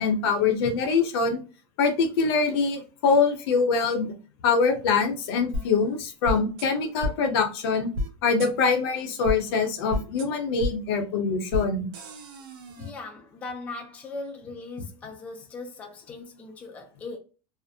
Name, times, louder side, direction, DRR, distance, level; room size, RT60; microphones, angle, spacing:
voice 1, 0.0-1.4 1.8-4.1 4.4-7.9 8.2-11.9, left 5 dB, 75° left, 0.8 m, -24 dB
sound 1, 5.5-5.6 6.2-6.7 7.0-7.1 7.9-8.1 8.4-8.5 9.2-9.4 9.9-10.3 10.6-10.7 11.5-11.6 11.9-12.9, left 1 dB, 70° right, 0.7 m, -30 dB
voice 2, 12.8-17.2, left 3 dB, 10° left, 0.3 m, -39 dB
2.5 x 2.0 x 2.6 m
supercardioid pair, 170°, 13 cm